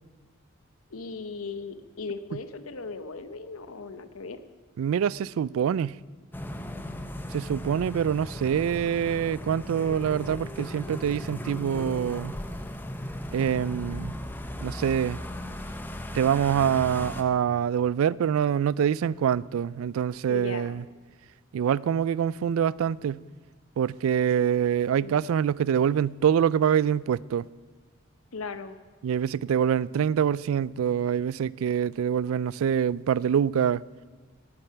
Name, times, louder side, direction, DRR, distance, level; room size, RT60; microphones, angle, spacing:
voice 1, 0.9-4.4 20.3-20.8 24.9-25.1 28.3-28.8, left 4 dB, 90° left, 0.9 m, -37 dB
voice 2, 4.8-6.0 7.3-12.4 13.3-14.1 14.6-15.2 16.1-20.8 21.5-23.2 23.8-27.4 29.0-33.8, right 8 dB, 85° right, 0.3 m, -25 dB
sound 1, 6.3-17.2, left 1 dB, 10° left, 0.6 m, -37 dB
17.0 x 8.8 x 5.7 m
head